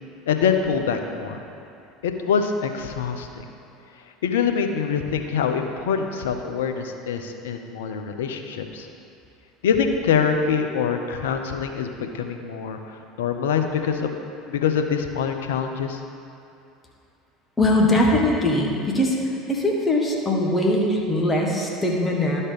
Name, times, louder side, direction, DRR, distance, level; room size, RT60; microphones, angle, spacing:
voice 1, 0.3-1.5 2.0-3.4 4.2-8.9 9.6-14.2 14.5-16.0, left 6 dB, 75° left, 5 dB, 0.6 m, -24 dB
voice 2, 17.6-19.2 19.5-22.4, left 1 dB, 20° left, -1 dB, 1.6 m, -21 dB
11.5 x 4.3 x 5.1 m, 2.6 s
hypercardioid pair, 75°, 0 cm